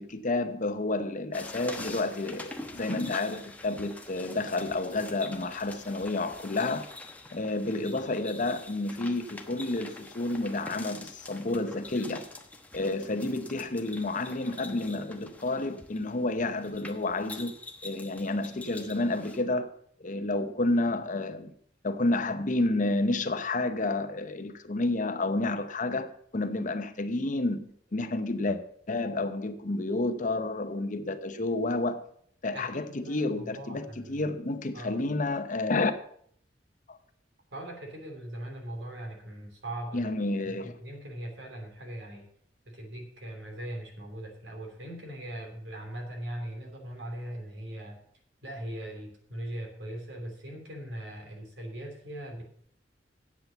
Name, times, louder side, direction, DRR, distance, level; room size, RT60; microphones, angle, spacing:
voice 1, 0.0-6.9 7.3-12.2 12.7-17.6 17.8-19.7 20.0-21.5 21.8-28.6 28.9-32.1 32.4-35.9 36.9-37.0 39.9-40.7, left 2 dB, 45° left, 0.8 m, -30 dB
sound 1, 1.3-19.4, left 2 dB, 10° left, 1.0 m, -45 dB
voice 2, 32.5-34.3 34.7-35.0 37.5-40.1 40.5-42.3 42.7-48.0 48.4-52.4, right 1 dB, 70° right, 2.9 m, -40 dB
8.5 x 8.0 x 6.9 m
head